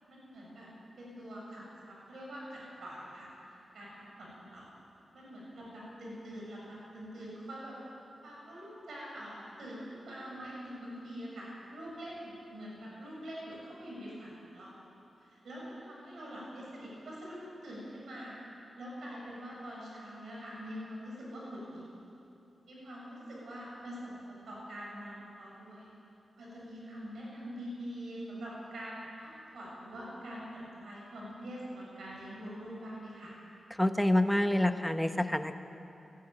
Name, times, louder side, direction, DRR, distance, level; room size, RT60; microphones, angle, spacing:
voice 1, 0.1-0.7 1.0-3.3 3.7-4.7 5.1-7.8 8.2-14.8 15.2-18.4 18.8-21.8 22.7-25.9 26.4-33.4, equal, 80° right, -4 dB, 6.9 m, -44 dB
voice 2, 33.8-35.6, left 1 dB, 5° left, 8 dB, 1.2 m, -27 dB
19.5 x 15.5 x 9.1 m, 2.9 s
cardioid pair, 65°, 0 cm